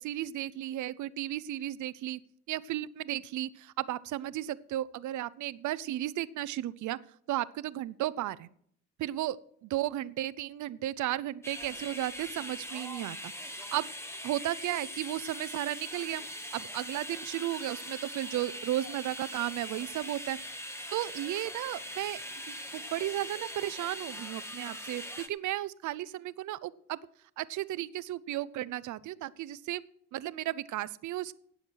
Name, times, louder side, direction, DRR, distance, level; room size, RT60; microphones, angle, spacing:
voice 1, 0.0-2.2 2.5-7.0 7.3-8.5 9.0-9.4 9.6-13.9 14.2-16.2 16.5-22.2 22.5-25.0 25.3-27.0 27.4-29.8 30.1-31.3, right 14 dB, 75° right, 18 dB, 0.6 m, -34 dB
sound 1, 11.4-25.3, equal, 10° left, 1.0 m, -42 dB
17.5 x 7.2 x 4.6 m, 0.65 s
cardioid pair, 90°, 30 cm